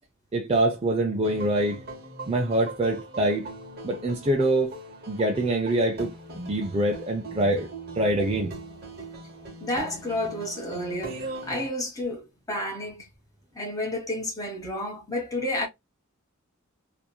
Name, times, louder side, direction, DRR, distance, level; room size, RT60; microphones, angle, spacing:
voice 1, 0.3-1.8 2.3-3.5 3.8-4.7 5.1-7.7 8.0-8.6, right 1 dB, 25° right, 0.4 m, -25 dB
sound 1, 1.2-11.7, right 2 dB, 45° right, 1.0 m, -41 dB
voice 2, 9.6-13.0 13.5-15.7, left 1 dB, 15° left, 1.0 m, -31 dB
2.9 x 2.6 x 2.2 m
head